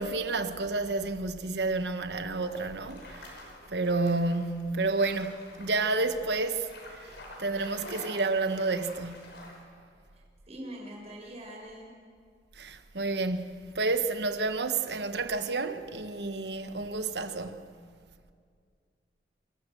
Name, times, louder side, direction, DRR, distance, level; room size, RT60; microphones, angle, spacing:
voice 1, 0.0-3.3 3.7-7.1 7.4-9.4 12.6-17.7, right 3 dB, 70° right, 1.2 m, -30 dB
sound 1, 2.3-9.6, left 1 dB, 80° left, 5.6 m, -48 dB
voice 2, 10.1-11.9, right 1 dB, 40° right, 6.1 m, -44 dB
27.5 x 14.0 x 7.7 m
head